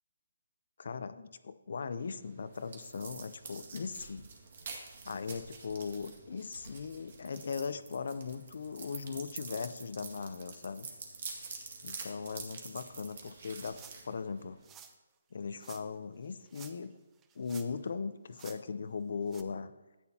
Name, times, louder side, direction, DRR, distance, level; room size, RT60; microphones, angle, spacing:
voice 1, 0.8-4.3 5.1-10.9 11.8-13.8 14.0-14.6 15.3-16.9 17.4-19.7, left 5 dB, 60° left, 13 dB, 0.6 m, -39 dB
sound 1, 2.0-14.7, right 4 dB, 50° right, 1.9 m, -47 dB
sound 2, 13.7-14.1 14.6-15.0 15.6-15.8 16.5-16.9 17.2-17.9 18.3-18.6 19.3-19.4, right 8 dB, 15° right, 0.5 m, -52 dB
13.0 x 9.1 x 2.8 m, 1.1 s
hypercardioid pair, 160°, 0 cm